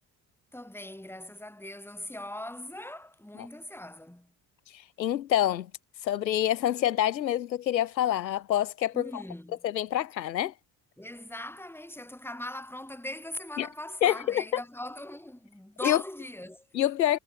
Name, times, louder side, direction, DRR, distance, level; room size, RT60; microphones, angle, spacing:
voice 1, 0.5-4.3 8.9-9.6 11.0-16.7, left 1 dB, 5° left, 5.3 m, -40 dB
voice 2, 5.0-5.7 6.0-9.2 9.6-10.5 13.6-13.7 14.0-14.4 15.8-16.0 16.7-17.2, left 12 dB, 90° left, 0.8 m, -26 dB
figure-of-eight pair, 50°, 50 cm